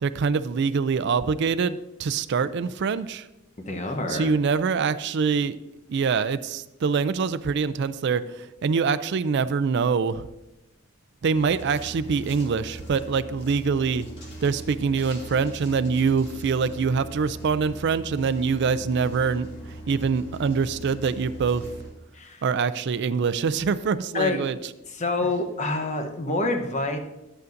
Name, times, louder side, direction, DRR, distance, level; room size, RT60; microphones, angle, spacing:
voice 1, 0.0-3.3 4.1-5.6 5.9-10.3 11.2-14.1 14.4-19.5 19.9-21.7 22.4-24.6, right 5 dB, 60° right, 13 dB, 0.4 m, -24 dB
voice 2, 3.6-4.3 22.1-22.4 24.1-24.4 24.9-27.0, left 2 dB, 35° left, 5 dB, 0.9 m, -27 dB
sound 1, 11.3-21.9, right 1 dB, 60° left, 2.0 m, -40 dB
11.0 x 8.1 x 2.6 m, 0.94 s
head